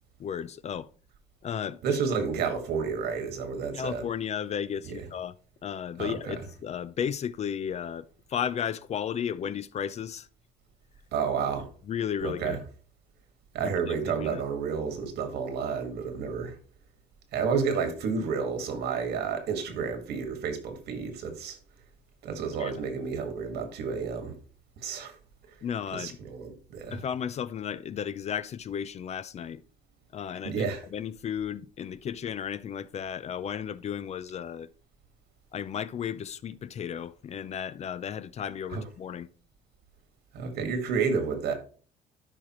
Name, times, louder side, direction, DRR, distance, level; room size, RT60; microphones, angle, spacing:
voice 1, 0.2-0.9 1.4-2.0 3.7-5.3 5.6-10.3 11.9-12.7 13.6-14.4 22.6-22.7 25.6-26.2 26.9-29.6 30.1-30.6 30.9-34.7 35.5-39.3, left 8 dB, 40° left, 0.4 m, -34 dB
voice 2, 1.8-4.1 4.9-5.0 6.0-6.3 11.1-11.7 12.2-12.6 13.5-16.5 17.3-21.6 22.2-24.4 24.8-25.2 25.9-27.0 30.4-30.8 38.7-38.8 40.3-41.5, right 6 dB, 75° right, 1.8 m, -30 dB
12.5 x 5.0 x 3.0 m
cardioid pair, 110°, 17 cm